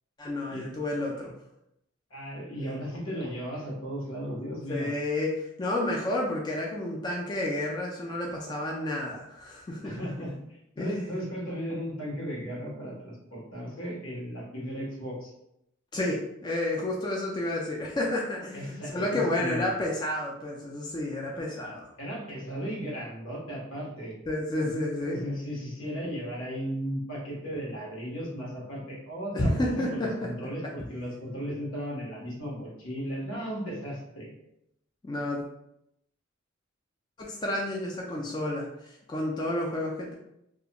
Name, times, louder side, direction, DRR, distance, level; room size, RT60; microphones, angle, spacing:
voice 1, 0.2-1.3 4.7-10.0 10.8-11.2 15.9-21.9 24.3-25.2 29.3-30.1 35.0-35.4 37.2-40.1, left 1 dB, 20° left, -2 dB, 0.3 m, -30 dB
voice 2, 2.1-4.9 9.8-10.3 10.8-15.3 18.5-19.7 22.0-24.1 24.6-34.4, equal, 85° left, -3 dB, 1.0 m, -36 dB
2.3 x 2.1 x 2.8 m, 0.81 s
head